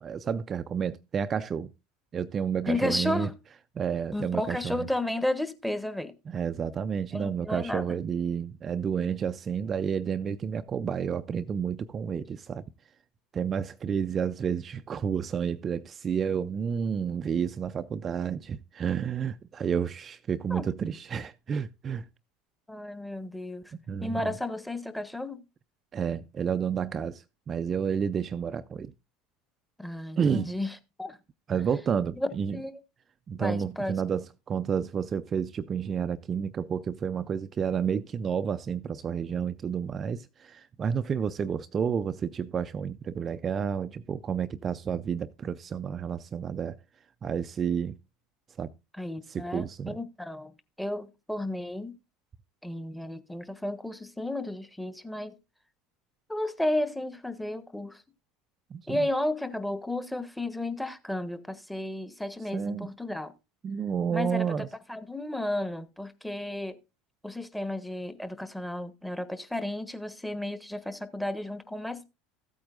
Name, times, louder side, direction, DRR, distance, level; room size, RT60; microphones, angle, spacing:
voice 1, 0.0-1.7 2.1-3.3 3.8-4.8 6.3-12.7 13.3-22.1 23.9-24.4 25.9-28.9 30.2-30.5 31.5-32.6 33.3-46.8 47.2-48.0 48.6-48.7 49.3-50.0 58.7-59.0 62.5-62.9 63.6-64.7, right 7 dB, 35° right, 0.5 m, -30 dB
voice 2, 2.7-3.3 4.1-6.1 7.1-7.8 20.5-20.6 22.7-23.7 24.0-25.4 29.8-31.2 32.2-32.8 33.4-34.0 49.0-50.5 50.8-52.0 52.6-55.3 56.3-58.0 58.9-63.3 64.1-66.8 67.2-72.0, left 1 dB, 5° left, 1.2 m, -33 dB
15.0 x 8.7 x 2.5 m
hypercardioid pair, 75°, 0 cm